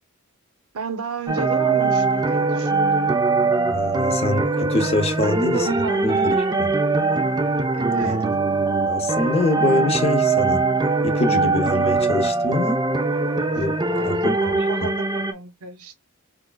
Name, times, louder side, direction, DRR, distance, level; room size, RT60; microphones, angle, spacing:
voice 1, 0.7-3.1 5.2-6.8 7.7-8.2 13.8-16.0, right 4 dB, 80° right, 0.6 m, -33 dB
sound 1, 1.3-15.3, right 3 dB, 20° right, 0.4 m, -21 dB
voice 2, 3.7-5.7 6.0-6.7 8.0-8.1 8.9-10.7 11.0-12.8 13.5-13.7 14.0-14.6, left 2 dB, 25° left, 0.6 m, -24 dB
4.7 x 2.3 x 2.3 m
head